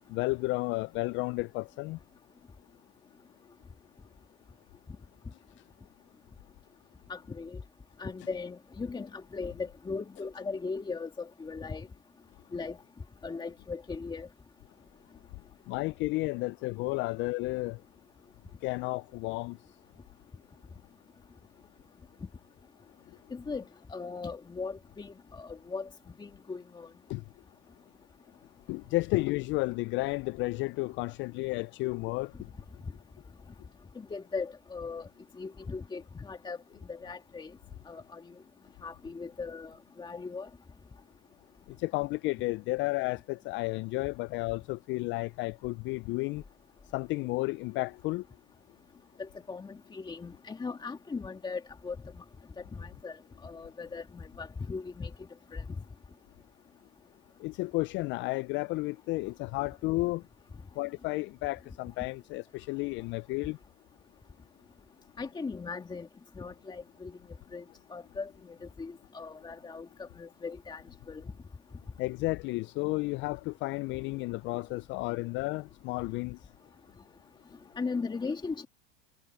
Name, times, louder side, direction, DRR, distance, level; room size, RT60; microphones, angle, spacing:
voice 1, 0.1-2.0 15.7-17.8 18.6-19.6 27.1-27.2 28.7-32.3 41.8-46.4 46.9-48.2 57.4-60.2 60.8-63.6 72.0-76.4, left 22 dB, 40° left, 0.4 m, -32 dB
voice 2, 7.1-7.6 8.0-11.9 12.5-12.8 13.2-14.3 23.3-23.6 23.9-25.9 26.2-26.9 34.0-35.1 35.4-36.6 36.9-37.5 37.9-38.2 38.8-40.5 49.2-52.0 52.7-53.2 53.4-55.1 55.5-55.6 65.2-66.1 66.4-67.1 67.5-67.6 67.9-68.3 68.8-70.8 71.1-71.2 77.8-78.7, left 4 dB, 15° left, 2.2 m, -38 dB
supercardioid pair, 115°, 29 cm